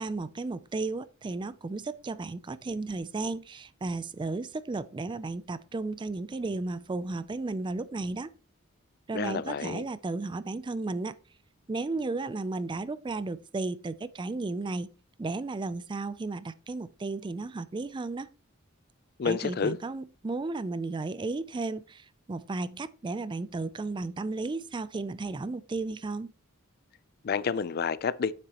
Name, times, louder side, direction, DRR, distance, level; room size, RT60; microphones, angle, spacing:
voice 1, 0.0-8.3 9.1-11.2 11.7-14.9 15.2-18.3 19.2-26.3, right 3 dB, 20° right, 0.3 m, -34 dB
voice 2, 9.1-9.9 19.2-19.8 27.2-28.3, left 5 dB, 45° left, 0.4 m, -29 dB
9.1 x 7.4 x 2.9 m
head